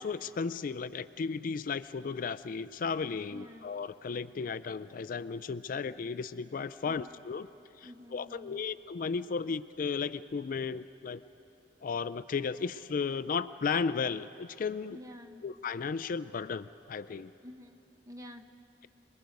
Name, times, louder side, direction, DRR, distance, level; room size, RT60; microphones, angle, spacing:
voice 1, 0.0-7.5 7.8-11.2 11.8-15.0 15.4-17.3, left 5 dB, 50° left, 14 dB, 0.4 m, -34 dB
voice 2, 3.3-3.7 6.8-7.2 7.8-8.6 14.9-15.4 17.4-18.5, left 1 dB, 20° right, 6 dB, 0.9 m, -49 dB
28.5 x 20.5 x 5.3 m, 2.9 s
head